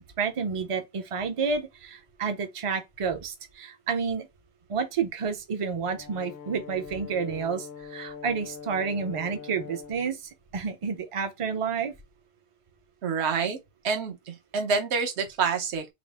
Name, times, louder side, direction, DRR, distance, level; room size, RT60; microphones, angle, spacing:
voice 1, 0.2-4.3 4.7-7.7 7.9-10.2 10.5-11.9, right 5 dB, 35° right, 0.6 m, -30 dB
Brass instrument, 5.9-10.0, left 6 dB, 65° left, 0.9 m, -42 dB
voice 2, 13.0-13.6 13.8-15.9, right 5 dB, 65° right, 1.1 m, -27 dB
4.2 x 2.0 x 3.4 m
omnidirectional pair, 1.2 m